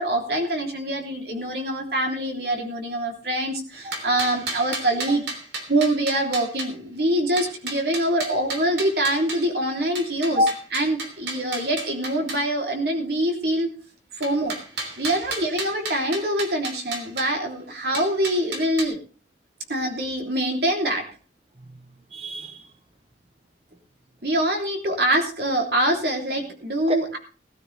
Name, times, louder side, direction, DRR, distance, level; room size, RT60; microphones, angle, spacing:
voice 1, 0.0-5.2 5.7-10.4 10.7-13.7 14.1-14.5 15.0-19.0 19.7-21.1 24.2-27.2, right 1 dB, 65° right, 2 dB, 3.3 m, -24 dB
sound 1, 3.7-6.7 7.4-9.5 10.0-12.4 14.2-17.3 17.9-18.8, right 3 dB, 80° right, 3.3 m, -33 dB
voice 2, 21.6-22.7 26.9-27.2, left 1 dB, 35° right, 8 dB, 0.7 m, -27 dB
18.5 x 12.5 x 3.4 m, 0.36 s
head